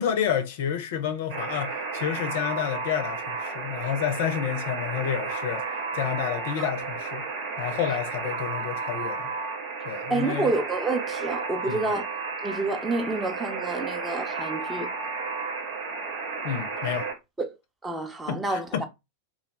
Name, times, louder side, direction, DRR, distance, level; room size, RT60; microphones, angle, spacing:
voice 1, 0.0-5.7 5.9-7.3 7.6-9.3 9.8-10.5 11.6-11.9 16.4-17.1 18.3-18.8, left 9 dB, 50° left, 0.4 m, -29 dB
Alarm, 1.3-17.1, right 4 dB, 50° right, 0.9 m, -33 dB
voice 2, 10.1-12.0 12.4-14.9 17.4-17.6 17.8-18.8, right 2 dB, 10° right, 0.5 m, -28 dB
2.3 x 2.1 x 3.1 m
figure-of-eight pair, 90°, 0 cm